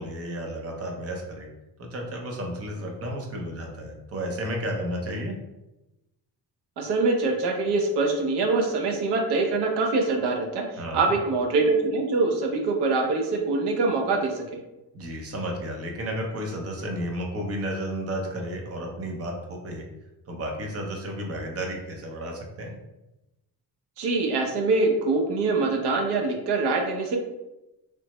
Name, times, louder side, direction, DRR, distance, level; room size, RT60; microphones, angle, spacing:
voice 1, 0.0-1.5 1.8-5.4 10.8-11.1 14.9-19.8 20.3-22.8, equal, 35° right, 1 dB, 0.6 m, -32 dB
voice 2, 6.8-10.6 10.9-14.4 24.0-27.2, right 3 dB, 75° right, 2 dB, 0.7 m, -24 dB
3.3 x 2.0 x 2.9 m, 0.97 s
cardioid pair, 150°, 40 cm